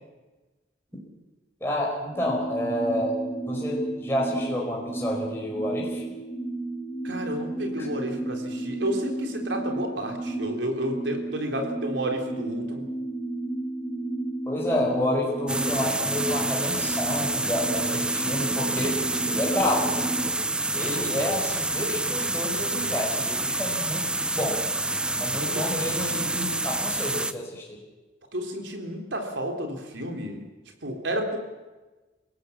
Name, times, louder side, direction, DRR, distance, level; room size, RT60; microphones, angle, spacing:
voice 1, 1.6-3.1 3.5-6.0 7.8-7.9 14.5-18.9 19.2-20.3 20.7-24.1 24.4-24.6 25.2-27.8, left 1 dB, 15° left, -3 dB, 4.9 m, -29 dB
sound 1, 2.1-20.2, right 2 dB, 50° right, 5.9 m, -33 dB
voice 2, 7.0-12.9 25.4-25.7 28.3-30.4 30.8-31.4, equal, 75° right, 3 dB, 3.8 m, -31 dB
sound 2, 15.5-27.3, right 2 dB, 5° right, 0.6 m, -28 dB
27.0 x 17.0 x 7.3 m, 1.2 s
head